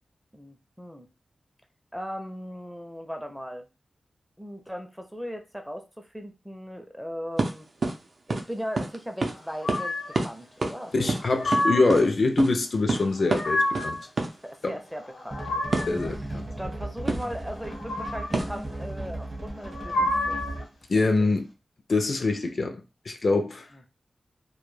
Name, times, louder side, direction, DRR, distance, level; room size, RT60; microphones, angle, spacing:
voice 1, 0.3-1.1 1.9-3.7 4.4-7.7 8.3-11.1 14.4-15.9 16.6-20.4 21.0-21.3 23.7-23.8, equal, ahead, 0.4 m, -38 dB
sound 1, 7.4-7.5 7.8-8.0 8.3-8.4 8.8-9.0 9.2-9.3 9.7-9.8 10.1-10.3 10.6-10.8 11.1-12.0 12.4-12.5 12.9-13.0 13.3-13.5 13.7-13.9 14.2-14.3 15.7-15.9 17.1-17.3 18.3-18.6, right 3 dB, 60° right, 0.5 m, -26 dB
sound 2, 9.6-10.2 11.0-12.1 13.0-14.0 15.0-16.1 17.6-18.5 19.6-20.6, left 1 dB, 90° left, 0.9 m, -29 dB
voice 2, 10.9-14.0 14.6-14.8 15.9-16.5 20.9-21.5 21.9-22.8 23.1-23.7, left 3 dB, 60° left, 0.3 m, -24 dB
sound 3, 15.3-20.8, right 1 dB, 35° right, 0.8 m, -36 dB
2.2 x 2.1 x 3.1 m
wide cardioid pair, 85°, 0 cm